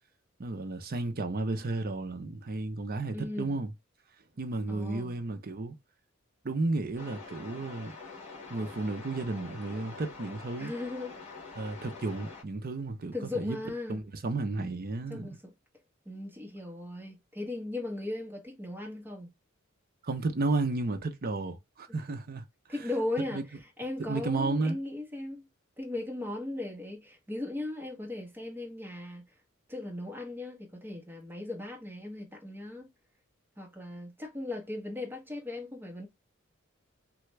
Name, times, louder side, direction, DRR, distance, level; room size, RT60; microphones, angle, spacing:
voice 1, 0.4-3.7 4.4-5.8 6.4-8.0 8.5-10.7 11.6-13.6 13.9-15.4 20.0-22.4 23.3-23.4 24.0-24.8, right 3 dB, 45° right, 0.6 m, -33 dB
voice 2, 3.1-3.6 4.7-5.1 10.6-11.2 13.1-14.0 15.1-15.4 16.0-19.3 21.9-22.0 22.7-23.4 23.8-25.5 25.8-29.3 29.7-32.9 33.6-36.1, left 2 dB, 10° right, 1.1 m, -37 dB
sound 1, 7.0-12.4, left 4 dB, 30° left, 1.6 m, -45 dB
3.3 x 2.3 x 3.1 m
head